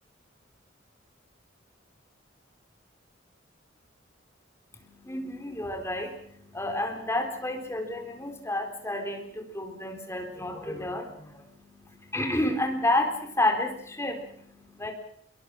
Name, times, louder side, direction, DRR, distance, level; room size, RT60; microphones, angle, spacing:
voice 1, 4.7-14.9, left 1 dB, 15° left, 4 dB, 3.9 m, -31 dB
25.5 x 23.0 x 6.3 m, 0.71 s
head